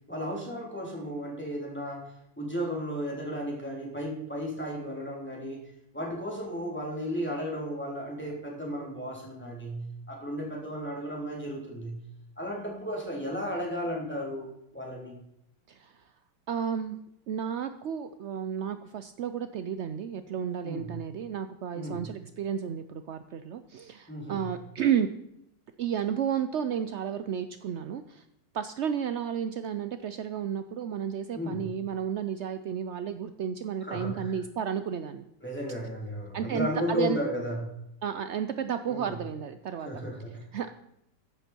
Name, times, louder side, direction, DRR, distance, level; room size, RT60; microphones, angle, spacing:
voice 1, 0.1-5.6 5.9-12.0 12.4-14.5 14.7-15.2 20.6-20.9 21.8-22.0 24.1-24.4 31.3-31.6 33.8-34.3 35.4-37.6 38.9-39.2 39.8-40.4, equal, 5° left, -2 dB, 3.5 m, -34 dB
voice 2, 16.5-17.0 17.3-25.1 25.8-28.2 28.5-35.2 36.3-37.2 38.0-39.9 40.5-40.7, right 8 dB, 70° right, 10 dB, 0.6 m, -32 dB
14.0 x 10.5 x 4.5 m, 0.78 s
omnidirectional pair, 1.9 m